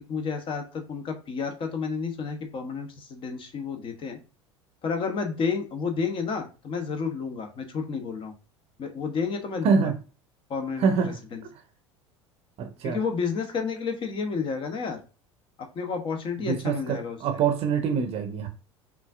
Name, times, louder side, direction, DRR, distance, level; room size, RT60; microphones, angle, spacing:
voice 1, 0.1-4.2 4.8-8.3 8.8-9.9 10.5-11.4 12.8-15.0 15.7-17.2, left 5 dB, 35° left, 0.9 m, -31 dB
voice 2, 9.6-10.0 10.8-11.2 12.6-13.0 16.4-18.5, right 6 dB, 40° right, 0.7 m, -25 dB
5.4 x 2.6 x 2.4 m
figure-of-eight pair, 70°, 15 cm